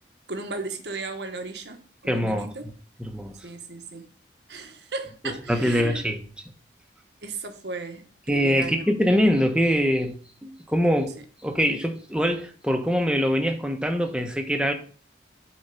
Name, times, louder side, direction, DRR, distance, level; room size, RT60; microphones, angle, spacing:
voice 1, 0.3-2.7 3.4-4.0 4.5-6.0 7.2-8.8, right 3 dB, 75° right, 1.4 m, -35 dB
voice 2, 2.1-2.5 3.0-3.3 5.5-6.2 8.3-10.2 10.4-11.1 11.4-14.7, equal, 5° right, 1.1 m, -23 dB
7.4 x 4.4 x 6.8 m
head